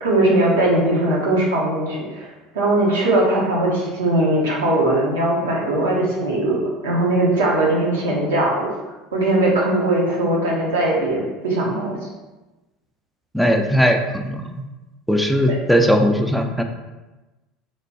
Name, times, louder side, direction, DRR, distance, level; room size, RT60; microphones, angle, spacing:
voice 1, 0.0-2.3 2.5-8.7 9.1-11.9 15.5-15.6, right 1 dB, 75° right, -3 dB, 0.7 m, -20 dB
voice 2, 13.3-14.6 15.1-16.6, equal, ahead, 4 dB, 0.3 m, -18 dB
3.1 x 2.2 x 2.7 m, 1.1 s
figure-of-eight pair, 70°, 0 cm